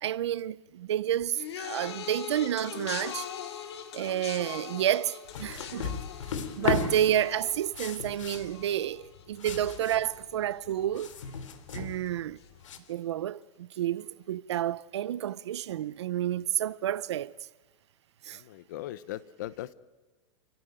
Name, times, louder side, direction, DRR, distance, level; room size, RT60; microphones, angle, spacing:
voice 1, 0.0-3.3 3.9-6.0 6.6-11.1 11.7-12.4 12.9-17.3 18.3-18.4, right 11 dB, 60° right, 0.7 m, -30 dB
sound 1, 1.3-10.7 11.0-11.5 12.4-12.5, left 9 dB, 55° left, 2.5 m, -42 dB
sound 2, 5.2-12.8, left 6 dB, 75° left, 3.1 m, -36 dB
voice 2, 6.6-7.0 18.3-19.7, left 14 dB, 35° left, 0.8 m, -40 dB
28.5 x 16.0 x 9.0 m
supercardioid pair, 180°, 16 cm